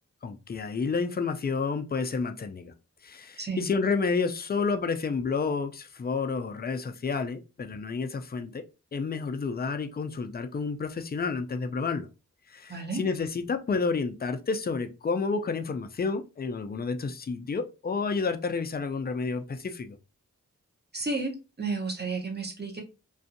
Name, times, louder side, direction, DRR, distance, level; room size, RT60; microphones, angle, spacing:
voice 1, 0.2-2.7 3.0-8.6 8.9-12.1 12.5-20.0, left 4 dB, 30° left, 0.4 m, -30 dB
voice 2, 12.7-13.0 20.9-22.8, right 3 dB, 30° right, 0.8 m, -32 dB
2.6 x 2.4 x 2.5 m
wide cardioid pair, 55°, 31 cm